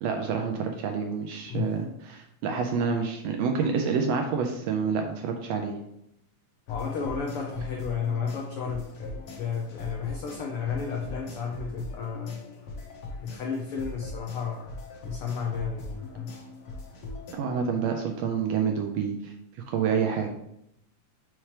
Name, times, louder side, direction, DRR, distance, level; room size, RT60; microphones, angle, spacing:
voice 1, 0.0-5.7 17.3-19.3 19.7-20.3, right 6 dB, 75° right, 3 dB, 1.6 m, -28 dB
voice 2, 1.5-1.8 6.7-12.5 13.2-14.7 15.0-16.4, left 6 dB, 85° left, 0 dB, 1.2 m, -32 dB
sound 1, 6.7-17.3, left 2 dB, 60° left, 1.5 m, -41 dB
5.8 x 5.7 x 3.2 m, 0.77 s
omnidirectional pair, 3.4 m